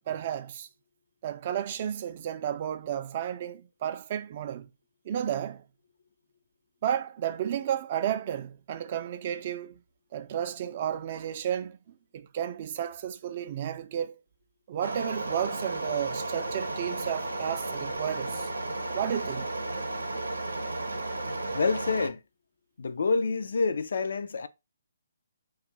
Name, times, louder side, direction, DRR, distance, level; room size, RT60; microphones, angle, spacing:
voice 1, 0.1-0.7 1.2-4.7 5.1-5.6 6.8-9.8 10.1-11.8 12.1-14.2 14.7-18.5 18.9-19.5, right 10 dB, 40° right, 0.3 m, -32 dB
sound 1, 14.8-22.1, right 2 dB, 90° right, 0.7 m, -33 dB
voice 2, 21.5-22.2 22.8-24.5, left 4 dB, 65° left, 0.3 m, -27 dB
2.6 x 2.3 x 2.9 m
figure-of-eight pair, 145°, 0 cm